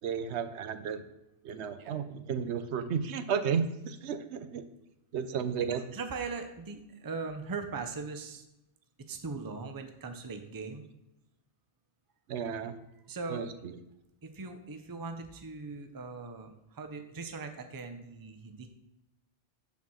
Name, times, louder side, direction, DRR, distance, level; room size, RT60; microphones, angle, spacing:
voice 1, 0.0-1.0 1.4-4.6 5.1-5.8 12.3-12.8 13.3-13.7, right 7 dB, 80° right, 11 dB, 0.9 m, -33 dB
voice 2, 5.9-8.4 9.1-10.8 13.1-13.5 14.2-18.7, right 4 dB, 25° right, 7 dB, 0.5 m, -40 dB
6.9 x 4.3 x 6.3 m, 0.90 s
omnidirectional pair, 1.1 m